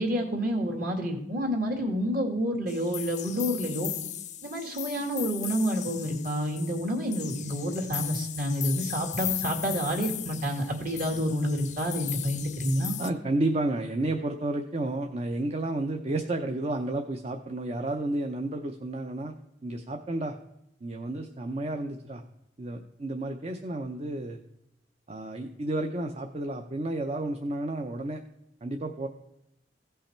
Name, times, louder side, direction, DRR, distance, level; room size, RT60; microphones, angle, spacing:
voice 1, 0.0-3.9 4.4-13.0, equal, 55° right, 1 dB, 2.1 m, -29 dB
sound 1, 2.7-13.1, left 11 dB, 45° left, 0.6 m, -37 dB
voice 2, 13.0-19.3 19.6-20.4 20.8-22.2 22.6-24.4 25.1-28.2 28.6-29.1, right 2 dB, 35° right, 4 dB, 0.6 m, -31 dB
16.0 x 5.6 x 4.4 m, 0.83 s
head